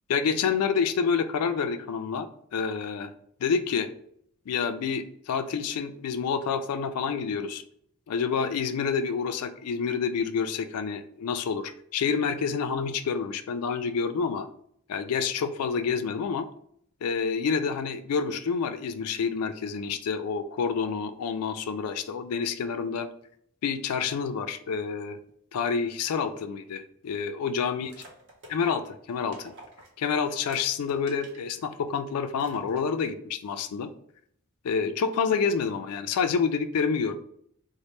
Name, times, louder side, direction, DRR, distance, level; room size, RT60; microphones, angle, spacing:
voice 1, 0.1-3.1 3.4-3.9 4.5-7.6 8.1-14.5 14.9-16.5 17.0-23.1 23.6-25.2 25.5-27.9 28.5-29.5 30.0-33.9 34.6-37.1, left 6 dB, 85° left, 9 dB, 0.4 m, -28 dB
sound 1, 27.8-31.5 31.9-32.0 32.4-33.1, right 1 dB, 55° right, 0.9 m, -50 dB
4.1 x 2.1 x 3.1 m, 0.69 s
head